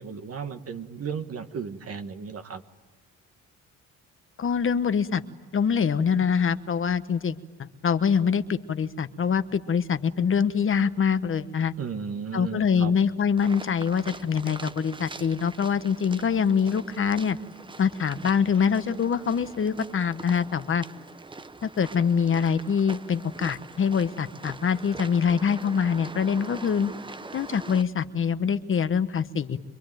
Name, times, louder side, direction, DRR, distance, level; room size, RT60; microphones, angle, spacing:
voice 1, 0.0-2.6 11.8-12.9, right 6 dB, 50° right, 7 dB, 1.8 m, -34 dB
voice 2, 4.4-5.2 5.5-11.7 12.3-17.4 17.8-20.8 21.6-26.9 27.3-29.6, left 6 dB, 45° left, 11 dB, 1.2 m, -24 dB
sound 1, 13.4-27.8, right 3 dB, 15° right, 0.8 m, -43 dB
26.0 x 23.0 x 9.2 m, 1.2 s
cardioid pair, 90°, 30 cm